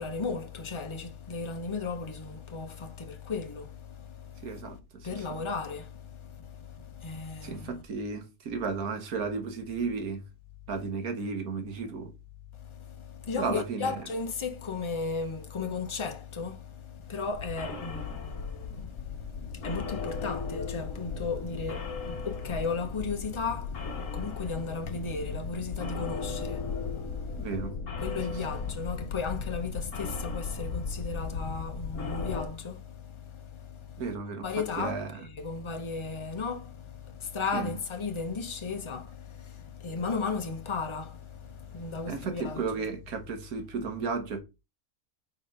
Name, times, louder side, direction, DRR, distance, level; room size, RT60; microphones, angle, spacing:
voice 1, 0.0-4.7 5.0-7.7 12.6-27.6 28.0-34.1 34.4-42.7, left 4 dB, 25° left, 0.7 m, -35 dB
voice 2, 4.4-5.4 7.4-10.2 10.7-12.1 13.4-13.9 27.4-27.7 34.0-34.5 34.8-35.2 37.5-37.7 42.1-44.4, right 5 dB, 80° right, 1.5 m, -34 dB
sound 1, 17.3-32.5, left 5 dB, 60° left, 1.5 m, -36 dB
4.3 x 4.3 x 5.2 m
omnidirectional pair, 1.5 m